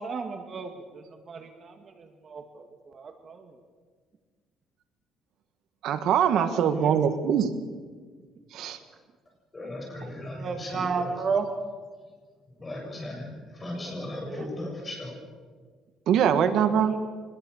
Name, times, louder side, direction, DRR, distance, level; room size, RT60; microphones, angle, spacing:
voice 1, 0.0-3.5 6.3-7.0 10.3-11.5 14.3-14.5 16.9-17.0, right 5 dB, 35° right, 5 dB, 1.9 m, -34 dB
voice 2, 5.8-7.5 8.5-8.8 16.1-16.9, right 8 dB, 65° right, 9 dB, 1.6 m, -23 dB
voice 3, 9.5-11.2 12.6-13.3 13.5-15.2, left 1 dB, 20° left, 0 dB, 7.8 m, -37 dB
24.5 x 20.5 x 7.2 m, 1.5 s
cardioid pair, 140°, 0 cm